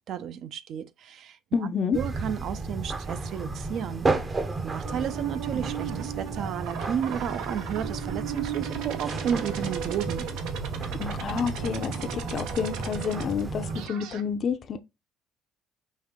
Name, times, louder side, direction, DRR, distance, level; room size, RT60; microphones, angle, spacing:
voice 1, 0.1-1.4 1.9-4.1 4.6-10.3, right 8 dB, 60° right, 0.6 m, -32 dB
voice 2, 1.5-2.0 10.9-14.8, left 6 dB, 45° left, 0.6 m, -29 dB
sound 1, 1.9-13.9, right 3 dB, 25° right, 0.7 m, -33 dB
sound 2, 4.8-14.2, right 8 dB, 85° right, 0.8 m, -36 dB
5.4 x 2.7 x 3.6 m
cardioid pair, 115°, 0 cm